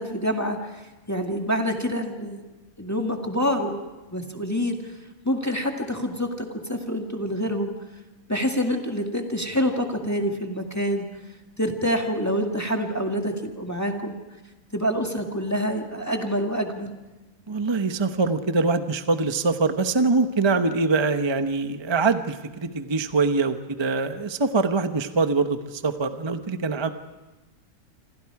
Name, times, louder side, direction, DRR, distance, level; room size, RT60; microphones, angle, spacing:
voice 1, 0.0-2.4 2.8-3.8 4.1-4.8 5.2-7.7 8.3-11.1 11.6-14.2 14.7-16.9, equal, 10° left, 2 dB, 1.9 m, -26 dB
voice 2, 17.5-26.9, right 3 dB, 20° right, 8 dB, 0.8 m, -23 dB
27.0 x 26.5 x 4.8 m, 1.1 s
omnidirectional pair, 1.6 m